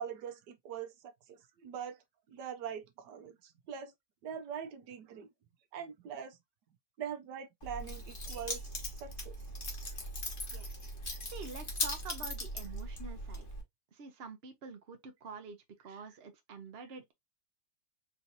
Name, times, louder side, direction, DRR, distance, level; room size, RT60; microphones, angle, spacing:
voice 1, 0.0-2.0 2.3-3.9 4.2-5.3 5.7-6.4 7.0-8.6 9.0-9.3 11.1-11.2 15.9-16.0, right 8 dB, 80° right, 1.3 m, -43 dB
Keys jangling, 7.6-13.6, left 1 dB, 35° left, 1.4 m, -39 dB
voice 2, 11.3-13.5 13.9-17.1, right 4 dB, 45° right, 1.0 m, -47 dB
4.8 x 2.8 x 2.7 m
omnidirectional pair, 1.8 m